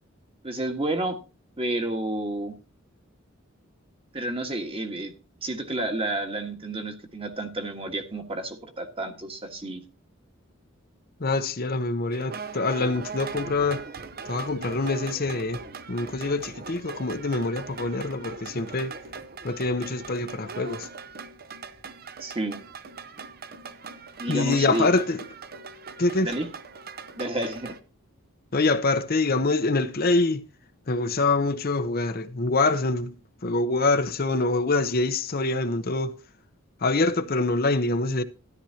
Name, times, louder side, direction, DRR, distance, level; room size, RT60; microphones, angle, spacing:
voice 1, 0.4-1.2 1.6-2.6 4.1-5.1 5.4-9.8 22.2-22.6 24.2-24.9 26.2-26.5 27.2-27.7, right 1 dB, 25° right, 1.6 m, -30 dB
voice 2, 11.2-13.8 14.3-15.6 15.9-18.9 19.4-20.9 24.3-25.2 26.0-26.3 28.5-30.4 30.9-36.2 36.8-38.2, left 3 dB, 45° left, 0.8 m, -25 dB
sound 1, 12.1-27.8, right 5 dB, 45° right, 0.9 m, -40 dB
13.5 x 11.5 x 2.9 m
head